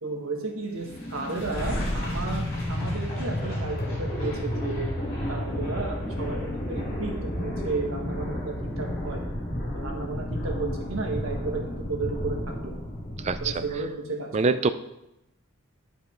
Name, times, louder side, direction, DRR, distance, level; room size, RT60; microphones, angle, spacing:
voice 1, 0.0-2.4 2.7-4.8 5.3-9.2 9.7-12.4 12.6-12.7 13.4-14.3, right 3 dB, 80° right, 1 dB, 1.6 m, -33 dB
sound 1, 0.8-13.9, left 1 dB, 45° left, 2.9 m, -31 dB
voice 2, 13.2-13.6 14.3-14.7, right 4 dB, 30° right, 12 dB, 0.3 m, -24 dB
9.4 x 5.4 x 4.4 m, 0.89 s
head